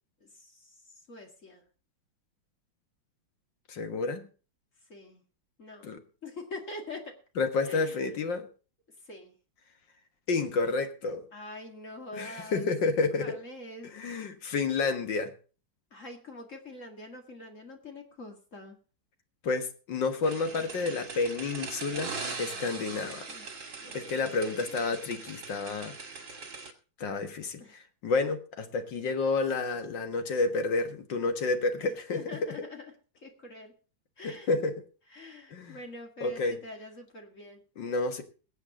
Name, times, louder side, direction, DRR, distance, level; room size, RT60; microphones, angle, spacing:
voice 1, 0.2-0.8 1.1-1.6 4.9-5.2 5.6-5.9 6.2-7.2 7.6-8.0 9.1-9.3 11.3-12.7 13.2-13.9 15.9-18.8 22.3-23.5 23.8-24.6 27.6-27.8 31.8-32.9 33.2-33.7 34.2-34.5 35.1-37.6, left 2 dB, 40° left, 4 dB, 2.2 m, -45 dB
voice 2, 3.7-4.3 5.8-6.0 7.4-8.5 10.3-11.3 12.1-13.4 13.8-15.3 19.4-23.3 23.9-25.9 27.0-32.4 34.2-34.8 35.5-35.8 36.2-36.6 37.8-38.2, left 3 dB, 65° left, 7 dB, 2.2 m, -30 dB
sound 1, 20.2-26.7, right 4 dB, 70° right, 2.8 m, -41 dB
22.5 x 8.1 x 3.7 m, 0.37 s
omnidirectional pair, 2.2 m